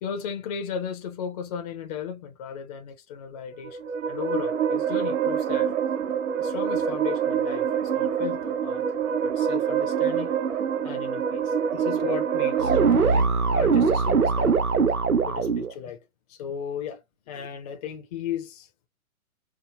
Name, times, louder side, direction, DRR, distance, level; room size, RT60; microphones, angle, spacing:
voice 1, 0.0-3.8 4.1-5.7 6.4-8.8 9.2-10.3 10.8-12.8 13.1-14.6 15.2-16.0 16.3-18.7, left 8 dB, 30° left, 0.7 m, -35 dB
sound 1, 3.5-12.9, right 8 dB, 60° right, 0.9 m, -26 dB
sound 2, 12.6-15.7, right 5 dB, 90° right, 0.9 m, -21 dB
4.7 x 2.0 x 2.5 m
figure-of-eight pair, 130°, 42 cm